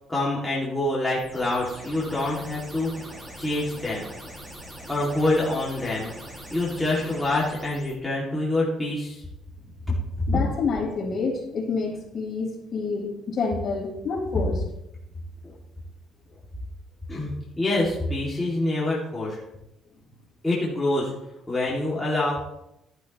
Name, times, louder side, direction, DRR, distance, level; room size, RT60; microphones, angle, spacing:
voice 1, 0.1-2.9 3.4-4.1 4.9-6.1 6.5-9.2 9.9-10.0 10.3-10.4 17.1-19.4 20.4-21.1 21.5-22.4, left 2 dB, 10° left, -7 dB, 2.4 m, -26 dB
sound 1, 1.2-8.0, equal, 15° right, 2.3 m, -42 dB
voice 2, 10.3-14.6, left 4 dB, 45° left, -3 dB, 4.8 m, -28 dB
12.5 x 11.0 x 3.1 m, 0.86 s
cardioid pair, 125°, 0 cm